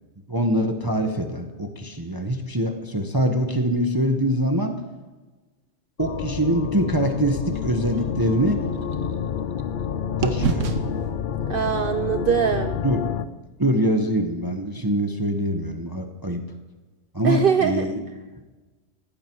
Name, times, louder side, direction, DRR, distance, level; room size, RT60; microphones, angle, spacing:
voice 1, 0.3-4.8 6.0-8.6 10.2-10.6 12.8-13.1 13.6-16.4 17.1-18.0, equal, 15° right, 5 dB, 1.1 m, -24 dB
sound 1, 6.0-13.2, left 8 dB, 55° left, 0.6 m, -29 dB
sound 2, 7.5-9.8 10.2-14.2, right 5 dB, 70° right, 1.4 m, -33 dB
voice 2, 11.5-12.8 17.2-17.9, right 7 dB, 50° right, 9 dB, 0.7 m, -22 dB
18.5 x 15.5 x 4.7 m, 1.2 s
omnidirectional pair, 1.4 m